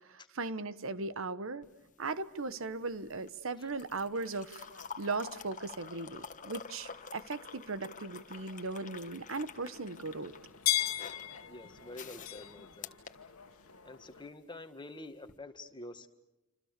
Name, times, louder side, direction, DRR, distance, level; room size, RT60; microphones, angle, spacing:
voice 1, 0.1-1.6 2.0-4.7 5.0-10.3, right 3 dB, 70° right, 14 dB, 1.2 m, -38 dB
sound 1, 1.6-13.9 15.2-15.4, left 6 dB, 40° left, 1.5 m, -49 dB
sound 2, 4.6-14.3, left 13 dB, 85° left, 1.6 m, -41 dB
voice 2, 11.5-13.0 13.8-16.1, left 2 dB, 20° left, 7 dB, 1.8 m, -48 dB
27.5 x 27.0 x 6.8 m, 0.97 s
head